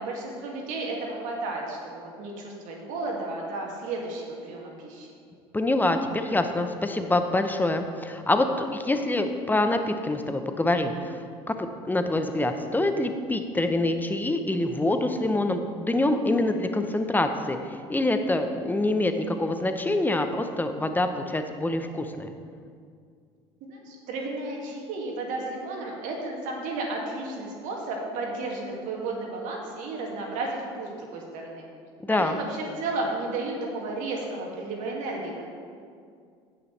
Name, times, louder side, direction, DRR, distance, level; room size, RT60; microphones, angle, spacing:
voice 1, 0.0-5.1 23.7-31.6 32.1-35.4, right 2 dB, 65° right, -1 dB, 2.1 m, -33 dB
voice 2, 5.5-11.2 11.5-22.3 32.0-32.4, left 2 dB, 15° left, 7 dB, 0.8 m, -26 dB
16.0 x 5.9 x 3.3 m, 2.2 s
hypercardioid pair, 70°, 14 cm